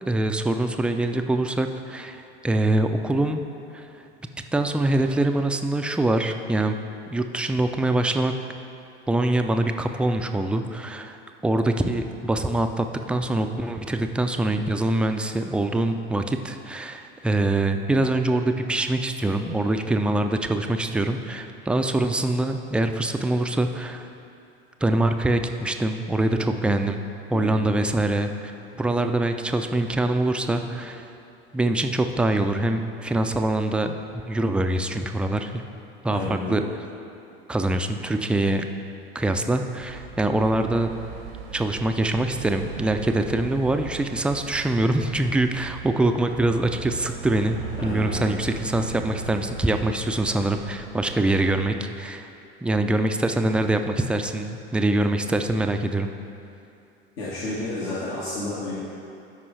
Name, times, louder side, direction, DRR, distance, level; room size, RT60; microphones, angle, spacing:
voice 1, 0.0-3.4 3.7-3.9 4.5-6.8 7.1-8.3 9.1-11.2 11.4-24.1 24.8-27.0 27.3-28.3 28.7-31.1 31.5-34.0 34.3-35.6 36.0-36.6 37.5-38.7 39.1-40.9 41.5-52.3 52.6-56.1, right 2 dB, 5° right, 6 dB, 0.3 m, -24 dB
voice 2, 26.2-26.5 27.3-27.7 36.1-36.6 47.8-48.3 57.2-58.9, left 2 dB, 75° left, -9 dB, 1.6 m, -31 dB
sound 1, 39.8-51.8, right 5 dB, 65° right, 0.8 m, -38 dB
12.5 x 5.2 x 3.3 m, 2.7 s
figure-of-eight pair, 70°, 31 cm